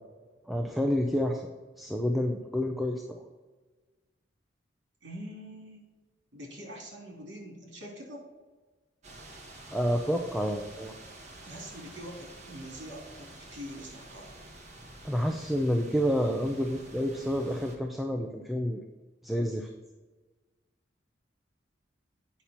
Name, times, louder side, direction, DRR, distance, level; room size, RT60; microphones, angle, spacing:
voice 1, 0.5-1.4 1.8-3.2 9.7-10.9 15.0-18.8 19.2-19.7, equal, ahead, 2 dB, 0.5 m, -29 dB
voice 2, 5.0-5.8 6.3-8.2 11.5-14.3, equal, 65° right, -1 dB, 2.9 m, -44 dB
sound 1, 9.0-17.7, right 1 dB, 35° right, 1.4 m, -49 dB
8.4 x 5.7 x 4.3 m, 1.3 s
head